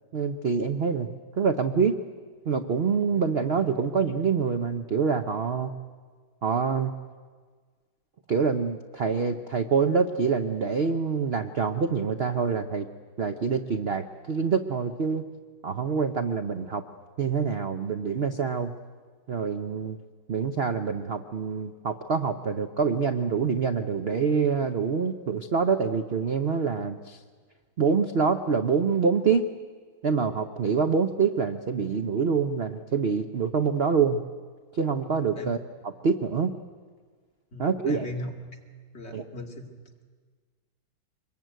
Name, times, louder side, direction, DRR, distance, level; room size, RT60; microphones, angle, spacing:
voice 1, 0.1-1.1 1.4-1.9 2.5-5.7 6.4-6.9 8.3-12.9 13.2-15.2 15.6-16.8 17.2-18.7 19.3-20.0 20.3-27.2 27.8-29.4 30.0-34.2 34.7-35.6 35.8-36.5 37.6-38.1 39.1-39.2, right 5 dB, 50° right, 8 dB, 0.7 m, -26 dB
voice 2, 37.5-38.3 38.9-39.7, left 1 dB, 35° left, 2 dB, 2.5 m, -37 dB
25.0 x 21.5 x 9.2 m, 1.6 s
omnidirectional pair, 2.1 m